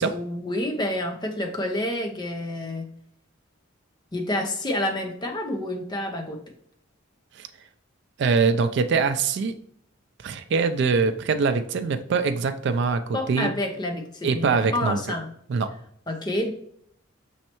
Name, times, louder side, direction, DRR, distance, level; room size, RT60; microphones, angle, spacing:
voice 1, 0.0-2.9 4.1-6.4 13.1-15.3 16.1-16.5, left 1 dB, 20° left, 3 dB, 0.6 m, -28 dB
voice 2, 8.2-9.5 10.2-13.5 14.2-15.0 15.5-15.7, right 5 dB, 60° right, 8 dB, 0.3 m, -23 dB
5.3 x 3.2 x 2.9 m, 0.67 s
head